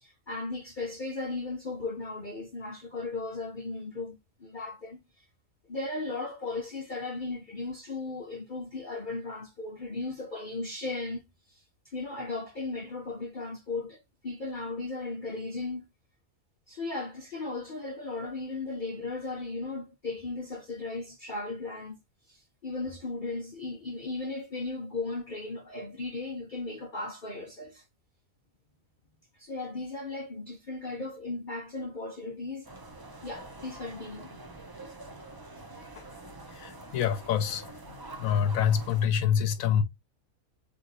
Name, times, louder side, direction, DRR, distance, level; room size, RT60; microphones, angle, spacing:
voice 1, 0.0-5.2 5.7-11.2 11.5-15.9 16.7-22.0 22.3-27.8 29.3-32.7 33.2-34.4, left 3 dB, 45° left, 0.8 m, -36 dB
sound 1, 32.6-39.1, right 2 dB, 40° right, 0.3 m, -46 dB
voice 2, 36.5-37.7 38.2-39.8, left 8 dB, 75° left, 1.0 m, -26 dB
3.7 x 3.1 x 3.8 m
omnidirectional pair, 1.5 m